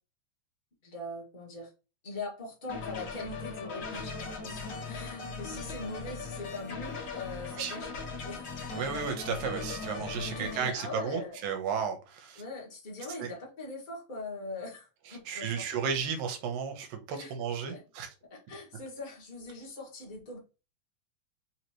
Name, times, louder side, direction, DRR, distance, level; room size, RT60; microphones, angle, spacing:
voice 1, 0.8-1.7 2.0-7.9 8.2-8.9 10.2-11.4 12.4-15.5 17.1-17.3 17.7-17.8 18.3-20.4, left 2 dB, 25° left, 1.0 m, -41 dB
sound 1, 2.7-10.7, left 4 dB, 60° left, 1.2 m, -39 dB
voice 2, 8.7-12.4 13.2-13.3 15.1-18.1, right 6 dB, 85° right, 2.6 m, -34 dB
5.8 x 3.0 x 2.9 m
omnidirectional pair, 3.9 m